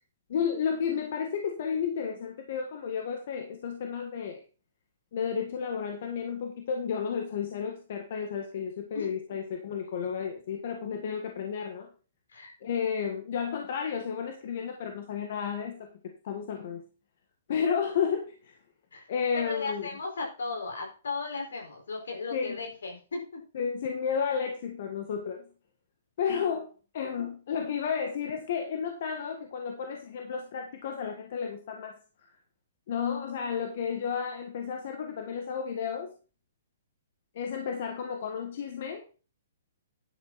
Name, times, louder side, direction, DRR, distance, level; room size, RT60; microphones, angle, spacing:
voice 1, 0.3-4.4 5.1-11.9 12.6-15.9 16.2-16.8 17.5-18.6 19.1-19.9 22.3-22.7 23.5-25.5 26.2-26.7 26.9-32.0 32.9-36.1 37.3-39.0, left 7 dB, 55° left, 3 dB, 1.6 m, -32 dB
voice 2, 19.4-23.4, left 3 dB, 85° left, 0 dB, 5.1 m, -36 dB
10.5 x 7.4 x 4.2 m, 0.35 s
hypercardioid pair, 145°, 0 cm